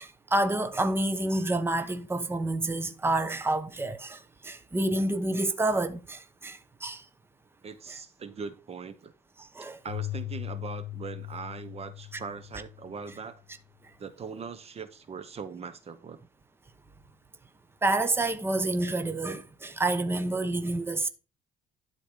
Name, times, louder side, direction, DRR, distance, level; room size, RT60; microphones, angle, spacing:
voice 1, 0.0-7.0 9.4-9.8 17.8-21.1, right 2 dB, 15° right, 1.0 m, -28 dB
voice 2, 7.6-9.1 9.8-13.4 14.0-16.2, right 5 dB, 40° right, 1.0 m, -40 dB
Keyboard (musical), 9.9-13.4, left 15 dB, 75° left, 0.5 m, -39 dB
11.5 x 4.4 x 5.1 m
cardioid pair, 110°, 17 cm